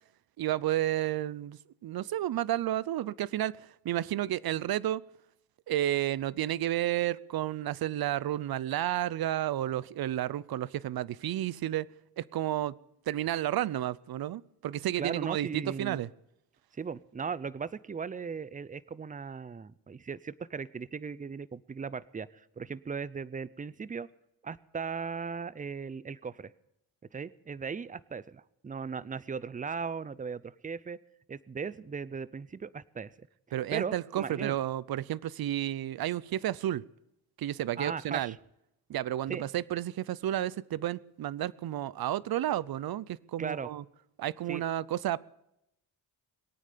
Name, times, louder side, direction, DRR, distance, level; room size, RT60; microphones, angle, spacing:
voice 1, 0.4-3.5 3.8-5.0 5.7-11.9 12.2-12.7 13.1-16.1 33.5-36.8 37.4-38.3 38.9-43.8 44.2-45.2, right 13 dB, 65° right, 0.6 m, -31 dB
voice 2, 15.0-16.0 16.7-24.1 24.4-26.5 27.1-31.0 31.3-33.3 33.7-34.6 37.8-38.4 39.3-39.4 43.4-43.7 44.5-44.6, right 5 dB, 20° right, 0.5 m, -38 dB
21.0 x 9.1 x 6.8 m
cardioid pair, 110°, 39 cm